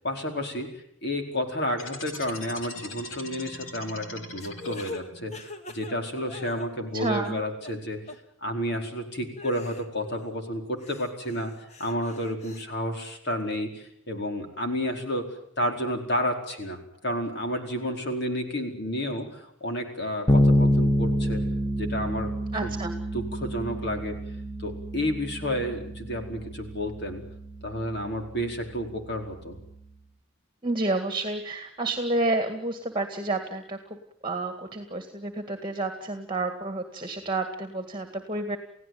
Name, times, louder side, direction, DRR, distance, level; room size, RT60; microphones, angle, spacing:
voice 1, 0.0-8.0 8.4-11.5 11.8-15.3 15.6-21.4 21.8-22.3 22.6-22.7 23.1-24.2 24.6-27.2 27.6-29.6, equal, 55° left, 4 dB, 4.7 m, -31 dB
sound 1, 1.8-5.3, left 2 dB, 85° left, 4.4 m, -41 dB
sound 2, 4.4-7.0 7.2-7.8 8.1-8.2 8.7-8.8 9.4-10.4 10.8-12.6, left 3 dB, 35° left, 2.0 m, -43 dB
voice 2, 6.9-7.4 22.5-22.9 30.6-34.0 34.2-38.6, right 2 dB, 25° right, 7 dB, 2.0 m, -30 dB
Bass guitar, 20.3-29.9, equal, 20° left, 1.3 m, -28 dB
30.0 x 16.5 x 9.4 m, 0.76 s
head